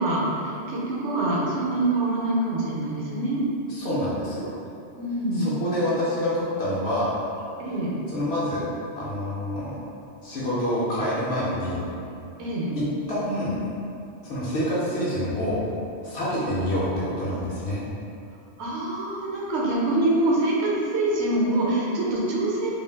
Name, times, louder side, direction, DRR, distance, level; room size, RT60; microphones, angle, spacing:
voice 1, 0.0-3.4 5.0-5.5 7.6-8.0 12.4-12.7 18.6-22.7, right 2 dB, 70° right, -4 dB, 0.8 m, -25 dB
voice 2, 3.7-4.5 5.3-7.2 8.1-8.7 9.0-9.7 10.2-11.8 12.7-13.6 14.2-15.6 16.0-17.8, equal, 65° left, -9 dB, 0.8 m, -27 dB
2.5 x 2.2 x 3.3 m, 2.6 s
omnidirectional pair, 1.2 m